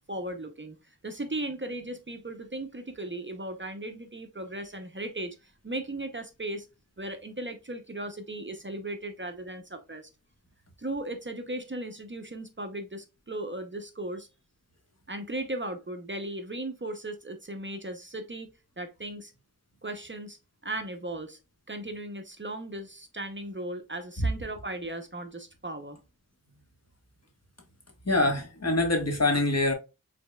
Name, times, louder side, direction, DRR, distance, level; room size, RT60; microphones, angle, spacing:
voice 1, 0.1-0.8 1.0-6.7 7.0-10.1 10.8-14.3 15.1-18.5 18.8-19.3 19.8-20.4 20.6-21.4 21.7-26.0, right 1 dB, 30° right, 0.8 m, -37 dB
voice 2, 28.0-29.7, left 2 dB, 45° left, 1.5 m, -24 dB
5.1 x 4.1 x 2.3 m
wide cardioid pair, 50°, 36 cm